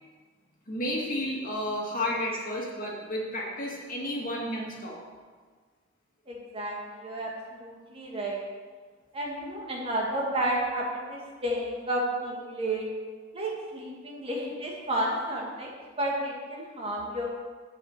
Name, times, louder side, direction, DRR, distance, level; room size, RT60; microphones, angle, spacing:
voice 1, 0.7-5.0, left 1 dB, 40° left, -3 dB, 2.1 m, -32 dB
voice 2, 6.3-8.5 9.1-12.9 13.3-17.3, right 1 dB, 30° right, -2 dB, 1.8 m, -32 dB
10.0 x 5.0 x 8.0 m, 1.5 s
head